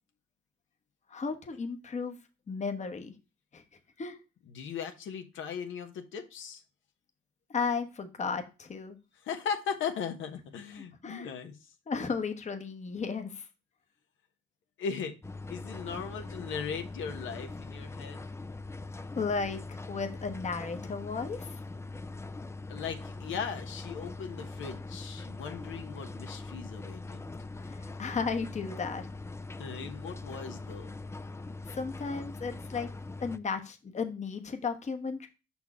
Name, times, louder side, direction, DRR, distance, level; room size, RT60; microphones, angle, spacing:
voice 1, 1.1-2.2 2.5-3.1 3.5-3.6 4.0-4.2 7.5-9.0 11.0-11.3 11.9-13.5 19.1-21.5 27.7-29.1 31.7-32.9 33.2-35.3, left 5 dB, 35° left, 1.1 m, -34 dB
voice 2, 4.5-6.6 9.2-11.5 14.8-15.2 15.5-18.3 22.7-27.3 29.6-30.9, left 6 dB, 80° left, 1.2 m, -38 dB
sound 1, 15.2-33.4, left 3 dB, 15° left, 0.5 m, -42 dB
5.7 x 4.5 x 4.8 m
cardioid pair, 90°, 20 cm